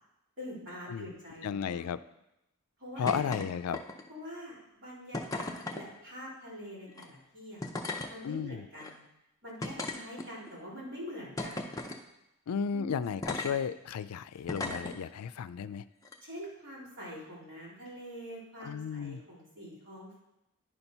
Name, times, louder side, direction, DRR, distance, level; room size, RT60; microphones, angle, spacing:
voice 1, 0.4-1.8 2.8-3.2 4.1-7.8 8.1-9.0 9.4-11.9 12.7-13.2 16.2-20.2, equal, 55° right, -7 dB, 3.7 m, -45 dB
voice 2, 1.4-2.0 3.0-3.8 8.2-8.6 12.5-15.8 18.6-19.2, left 7 dB, 85° left, 14 dB, 0.4 m, -34 dB
sound 1, 3.1-3.5 3.7-4.2 5.1-5.8 6.9-7.0 7.6-8.1 8.8-8.9 9.6-10.5 11.4-12.0 13.2-13.5 14.5-14.9 16.0-16.2, left 2 dB, 15° left, 0.5 m, -36 dB
10.0 x 4.5 x 5.4 m, 0.87 s
head